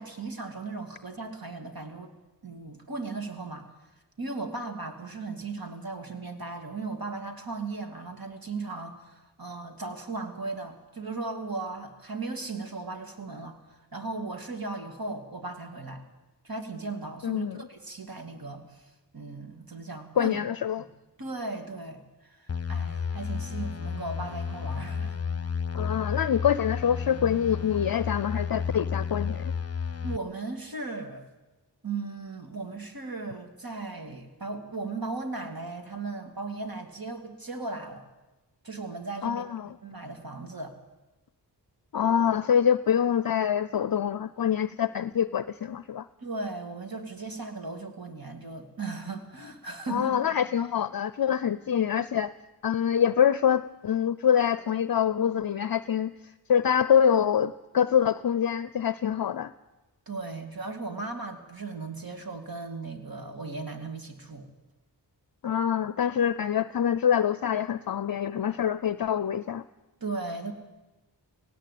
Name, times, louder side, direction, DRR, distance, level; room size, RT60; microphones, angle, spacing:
voice 1, 0.0-2.1 2.4-3.7 4.2-13.6 13.9-16.0 16.4-20.4 20.8-20.9 21.2-22.0 22.3-25.2 30.0-31.2 31.8-38.0 38.6-39.5 39.8-40.8 46.2-50.2 60.1-64.5 70.0-70.5, right 3 dB, 50° right, 5 dB, 2.7 m, -37 dB
voice 2, 17.2-17.7 20.2-20.8 25.7-29.5 39.2-39.7 41.9-46.1 49.9-52.3 52.6-56.1 56.5-59.5 65.4-69.6, left 8 dB, 55° left, 16 dB, 0.6 m, -25 dB
sound 1, 22.5-30.2, left 6 dB, 35° left, 0.9 m, -32 dB
18.5 x 17.0 x 8.5 m, 1.1 s
wide cardioid pair, 55°, 44 cm